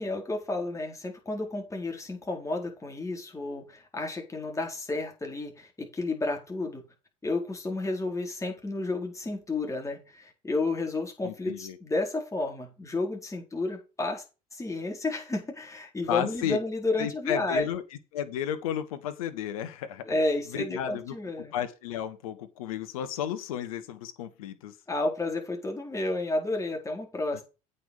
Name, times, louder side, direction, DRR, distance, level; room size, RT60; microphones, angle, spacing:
voice 1, 0.0-6.9 7.2-14.2 14.5-17.7 20.0-21.6 24.9-27.4, left 2 dB, 15° left, 4.4 m, -31 dB
voice 2, 11.2-11.8 16.1-16.6 17.0-17.8 18.1-20.1 20.5-21.2 21.5-24.7 27.3-27.4, left 10 dB, 70° left, 1.3 m, -33 dB
8.4 x 5.6 x 6.7 m
figure-of-eight pair, 65°, 19 cm